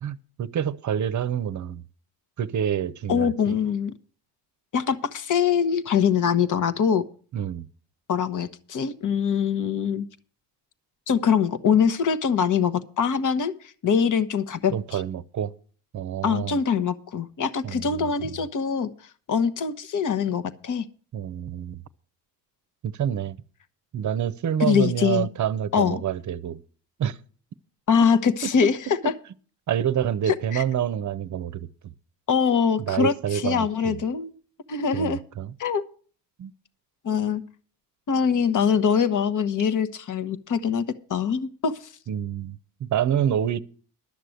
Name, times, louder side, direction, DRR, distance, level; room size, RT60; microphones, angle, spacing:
voice 1, 0.0-1.8 2.4-3.6 7.3-7.7 14.7-15.5 15.9-16.6 17.6-18.3 21.1-21.8 22.8-23.4 23.9-26.6 27.0-27.2 29.7-31.7 32.8-34.0 34.9-35.5 36.4-36.5 42.1-43.6, right 9 dB, 45° right, 0.7 m, -27 dB
voice 2, 3.1-3.9 4.7-7.0 8.1-10.1 11.1-13.5 13.8-15.0 16.2-18.9 19.3-20.9 24.6-25.3 25.7-26.0 27.9-29.1 30.3-30.6 32.3-34.4 34.7-35.2 35.6-35.8 37.0-37.4 38.1-40.8 41.1-41.8, left 7 dB, 45° left, 1.1 m, -23 dB
12.0 x 6.7 x 7.7 m
cardioid pair, 95°, 43 cm